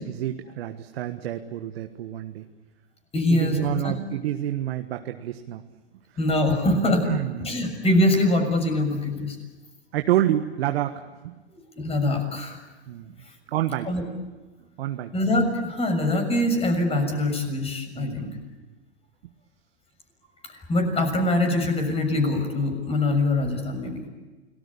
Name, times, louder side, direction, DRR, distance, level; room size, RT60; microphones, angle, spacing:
voice 1, 0.0-2.4 3.3-5.6 7.0-7.5 9.9-11.3 12.9-13.2 13.5-13.9 14.8-15.1 17.9-18.4, right 12 dB, 65° right, 6 dB, 1.5 m, -28 dB
voice 2, 3.1-3.9 6.2-7.0 7.4-9.3 11.5-12.6 13.8-14.0 15.1-18.4 20.5-24.1, left 1 dB, 20° left, 6 dB, 6.7 m, -23 dB
30.0 x 20.0 x 8.6 m, 1.3 s
hypercardioid pair, 115°, 33 cm